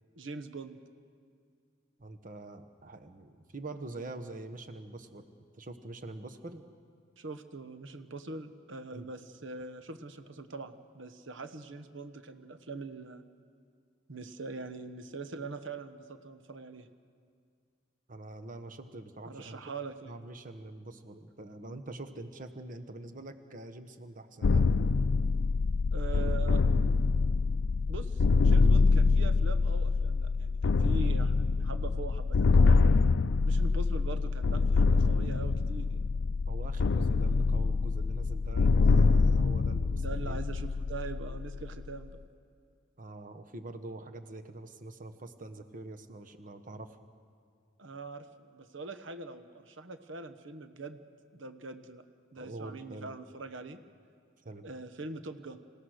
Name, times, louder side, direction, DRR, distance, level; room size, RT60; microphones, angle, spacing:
voice 1, 0.2-0.8 7.2-13.2 14.1-16.9 19.2-20.1 25.9-26.6 27.9-32.5 33.4-36.1 39.9-42.2 47.8-51.0 51.3-52.0 52.3-53.8 54.6-55.6, right 3 dB, 75° right, 9 dB, 1.1 m, -42 dB
voice 2, 2.0-5.3 5.5-6.6 8.9-9.1 18.1-19.6 20.0-24.7 36.5-40.4 43.0-47.0 52.4-53.1 54.4-54.7, right 2 dB, 45° right, 7 dB, 1.2 m, -45 dB
sound 1, 24.4-42.1, left 4 dB, 70° left, 0.4 m, -25 dB
27.5 x 17.0 x 6.5 m, 2.2 s
head